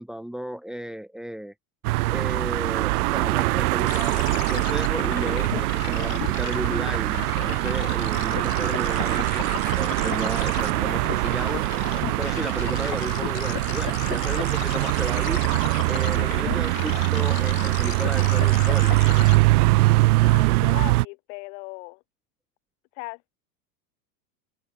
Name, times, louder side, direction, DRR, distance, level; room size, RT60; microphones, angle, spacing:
voice 1, 0.0-1.5 2.1-11.7 12.2-15.4 15.9-19.0, equal, ahead, 2.2 m, -34 dB
sound 1, 1.8-21.0, right 21 dB, 60° right, 1.4 m, -23 dB
sound 2, 3.9-19.4, left 18 dB, 75° left, 2.4 m, -36 dB
voice 2, 20.2-22.0 22.9-23.3, left 29 dB, 50° left, 6.0 m, -38 dB
supercardioid pair, 170°, 50 cm